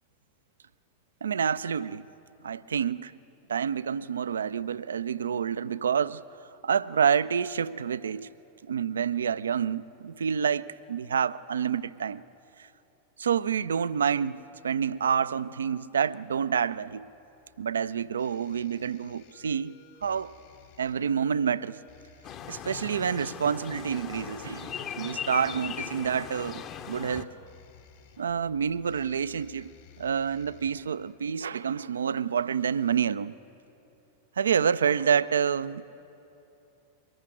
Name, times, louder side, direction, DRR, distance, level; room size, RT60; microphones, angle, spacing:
voice 1, 1.2-2.1 2.4-3.1 3.5-6.2 6.6-8.3 8.6-12.2 12.6-12.7 13.2-17.1 17.6-19.7 20.0-20.3 20.8-21.8 22.5-27.3 28.2-29.7 30.0-33.3 34.4-35.8, right 7 dB, 70° right, 0.4 m, -28 dB
sound 1, 16.6-31.1, left 5 dB, 55° left, 1.9 m, -57 dB
sound 2, 22.2-27.2, left 8 dB, 35° left, 0.9 m, -39 dB
23.0 x 14.0 x 8.9 m
figure-of-eight pair, 90°, 0 cm